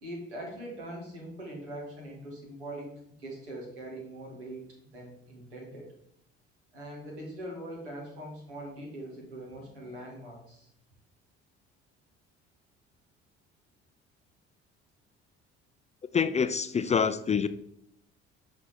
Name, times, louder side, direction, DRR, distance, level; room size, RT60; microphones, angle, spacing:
voice 1, 0.0-5.9 6.7-10.7, right 1 dB, 90° right, -2 dB, 1.9 m, -42 dB
voice 2, 16.1-17.5, left 6 dB, 20° left, 12 dB, 0.3 m, -26 dB
6.0 x 4.4 x 4.2 m, 0.74 s
hypercardioid pair, 55°, 33 cm